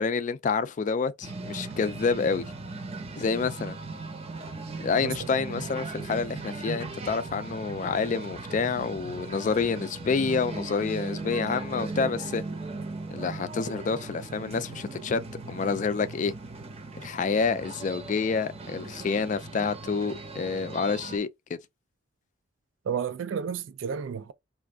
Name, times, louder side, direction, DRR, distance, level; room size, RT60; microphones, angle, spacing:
voice 1, 0.0-2.5 3.2-3.8 4.8-12.4 13.1-16.3 17.0-21.6, left 5 dB, 40° left, 0.3 m, -28 dB
sound 1, 1.2-21.2, right 3 dB, 35° right, 0.6 m, -38 dB
voice 2, 5.0-5.7 22.9-24.3, right 7 dB, 85° right, 0.3 m, -32 dB
2.5 x 2.4 x 3.4 m
head